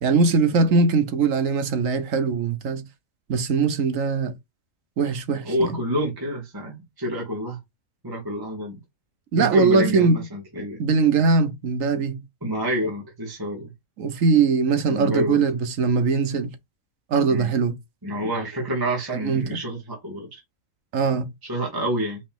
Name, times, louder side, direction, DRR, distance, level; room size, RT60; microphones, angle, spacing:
voice 1, 0.0-2.8 3.3-4.3 5.0-5.8 9.3-10.2 10.8-12.2 14.0-16.5 17.1-17.8 19.1-19.6 20.9-21.3, right 4 dB, 70° right, 1.2 m, -21 dB
voice 2, 5.4-7.6 8.0-8.7 9.4-10.8 12.4-13.7 14.9-15.4 17.3-17.5 18.0-20.4 21.4-22.2, equal, 15° right, 1.4 m, -28 dB
4.9 x 2.9 x 3.7 m
omnidirectional pair, 1.4 m